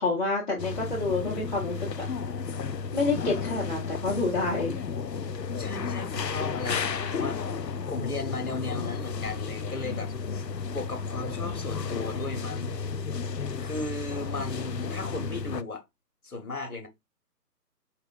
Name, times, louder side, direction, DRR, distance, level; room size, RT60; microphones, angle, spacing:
voice 1, 0.0-1.7 2.9-4.7 14.3-14.5 15.0-15.2, left 3 dB, 25° left, 1.3 m, -28 dB
sound 1, 0.6-15.6, left 5 dB, 85° left, 0.6 m, -33 dB
voice 2, 5.6-7.4 7.9-10.1 10.7-12.8 13.6-15.8 16.2-16.9, left 2 dB, 60° left, 1.4 m, -35 dB
4.8 x 2.3 x 4.0 m
figure-of-eight pair, 150°, 48 cm